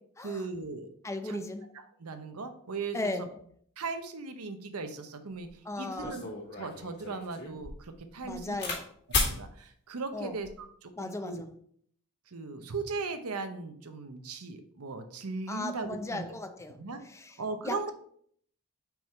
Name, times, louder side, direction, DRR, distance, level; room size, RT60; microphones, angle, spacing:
voice 1, 0.2-0.9 1.2-1.5 2.0-3.3 3.8-5.5 5.8-6.3 6.6-8.6 9.2-10.5 10.8-11.4 12.3-16.3 16.8-17.0 17.4-17.9, right 4 dB, 90° right, 8 dB, 0.8 m, -38 dB
voice 2, 1.0-1.6 2.9-3.3 5.6-6.2 8.2-8.9 10.1-10.4 11.0-11.5 15.5-16.8 17.0-17.4 17.6-17.9, left 2 dB, 15° left, 7 dB, 0.6 m, -36 dB
sound 1, 5.4-5.5 6.0-8.8 9.1-9.4 10.2-10.6, left 3 dB, 50° left, 2.4 m, -34 dB
5.4 x 4.6 x 4.5 m, 0.62 s
head